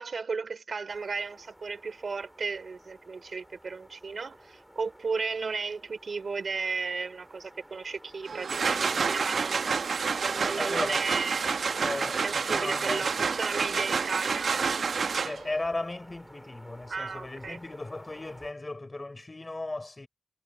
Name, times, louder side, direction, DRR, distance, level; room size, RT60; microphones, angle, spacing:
voice 1, 0.0-9.7 10.2-11.8 12.2-14.8 16.9-17.6, right 4 dB, 55° right, 2.9 m, -34 dB
sound 1, 0.9-18.5, equal, 5° right, 2.6 m, -53 dB
sound 2, 8.3-15.6, right 5 dB, 75° right, 1.0 m, -29 dB
voice 2, 10.6-11.0 11.8-13.3 15.2-20.1, left 2 dB, 25° left, 4.0 m, -36 dB
wide cardioid pair, 145°, 0 cm